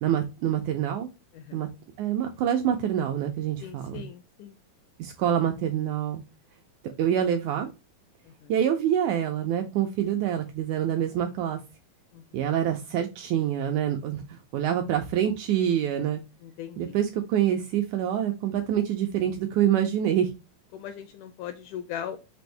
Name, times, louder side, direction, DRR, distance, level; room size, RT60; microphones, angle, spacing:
voice 1, 0.0-1.1 1.5-1.7 2.0-4.1 5.0-6.2 6.8-7.7 8.5-11.6 12.3-16.2 16.8-20.3, right 10 dB, 80° right, 4 dB, 1.8 m, -26 dB
voice 2, 1.3-1.7 3.6-4.6 8.3-8.5 12.1-12.4 16.4-17.0 20.7-22.2, left 9 dB, 80° left, 8 dB, 1.8 m, -39 dB
6.0 x 2.6 x 3.3 m, 0.26 s
omnidirectional pair, 4.0 m